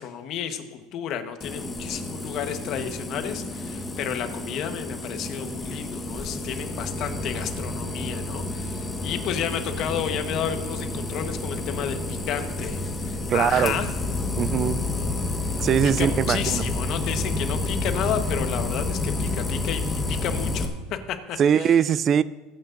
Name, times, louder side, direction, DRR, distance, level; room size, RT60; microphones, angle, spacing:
voice 1, 0.0-13.9 15.4-15.5 15.8-21.8, left 9 dB, 50° left, 1.1 m, -32 dB
sound 1, 1.4-20.7, left 2 dB, 20° left, 1.2 m, -30 dB
voice 2, 13.3-13.8 14.4-14.8 15.6-16.7 21.4-22.2, right 8 dB, 35° right, 0.3 m, -21 dB
22.5 x 9.1 x 2.6 m
supercardioid pair, 130°, 0 cm